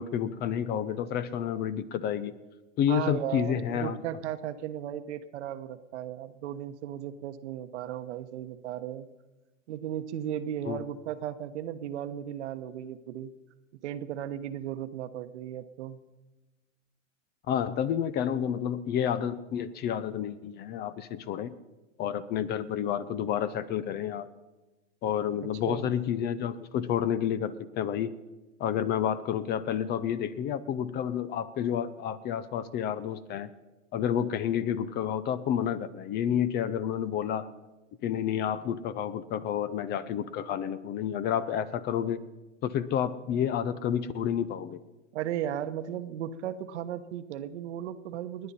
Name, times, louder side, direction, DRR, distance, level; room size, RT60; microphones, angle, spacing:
voice 1, 0.0-2.3 2.8-4.0 10.7-10.8 17.5-21.5 22.0-24.3 25.0-28.1 28.6-33.5 33.9-37.5 38.0-42.2 42.6-44.8, left 9 dB, 25° left, 15 dB, 0.6 m, -30 dB
voice 2, 2.9-9.1 9.7-13.3 13.8-16.0 25.7-25.9 45.1-48.5, right 10 dB, 60° right, 10 dB, 1.2 m, -36 dB
29.5 x 10.0 x 4.2 m, 1.1 s
hypercardioid pair, 120°, 39 cm